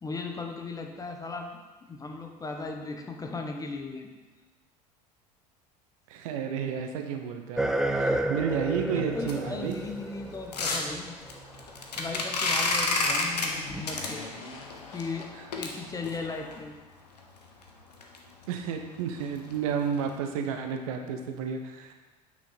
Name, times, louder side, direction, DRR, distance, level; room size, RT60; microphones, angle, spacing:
voice 1, 0.0-1.5 1.8-4.1 8.9-11.1 12.0-14.2 14.9-16.8, left 3 dB, 15° left, 3 dB, 1.0 m, -37 dB
voice 2, 6.1-9.8 18.5-21.9, right 7 dB, 60° right, 5 dB, 0.9 m, -31 dB
sound 1, 7.6-11.6 12.7-12.8 13.7-13.8, right 1 dB, 5° right, 0.3 m, -31 dB
sound 2, 9.2-16.6 17.2-17.3 17.6-17.7 18.0-18.2 18.5-18.6 19.0-19.2 19.5-19.6 20.1-20.2, left 3 dB, 75° left, 1.1 m, -31 dB
sound 3, 12.7-16.2, left 4 dB, 55° left, 1.3 m, -46 dB
8.7 x 6.2 x 4.3 m, 1.2 s
figure-of-eight pair, 70°, 21 cm